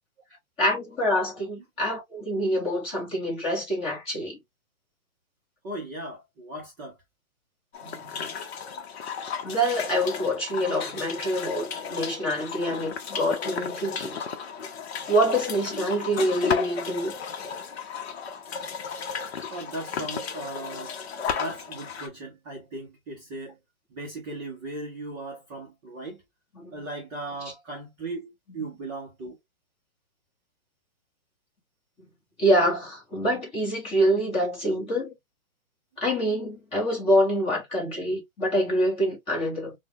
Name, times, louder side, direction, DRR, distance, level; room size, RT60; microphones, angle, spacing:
voice 1, 0.6-4.4 7.8-8.3 9.4-14.2 15.1-17.1 26.5-26.8 32.4-35.1 36.0-39.7, equal, 15° left, 1.1 m, -26 dB
voice 2, 5.6-7.0 19.5-21.0 21.3-23.6 23.9-26.2 26.7-29.4, right 2 dB, 15° right, 0.5 m, -37 dB
sound 1, 7.7-22.1, left 6 dB, 50° left, 0.8 m, -34 dB
3.2 x 2.2 x 2.8 m
hypercardioid pair, 145°, 41 cm